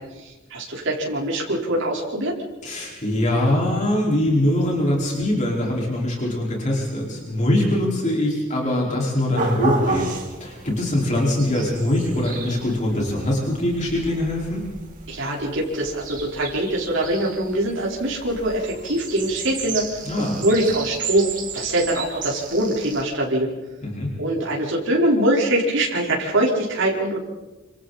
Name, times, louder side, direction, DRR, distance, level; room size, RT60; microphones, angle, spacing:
voice 1, 0.2-2.3 15.1-21.3 21.5-23.5 24.2-27.2, right 1 dB, 65° right, -3 dB, 4.5 m, -23 dB
voice 2, 2.6-10.1 10.4-14.6 20.0-20.4 23.8-24.1, left 1 dB, 35° left, -3 dB, 5.0 m, -22 dB
sound 1, 9.4-23.0, right 4 dB, 40° right, 3.5 m, -33 dB
27.5 x 26.5 x 4.3 m, 1.1 s
head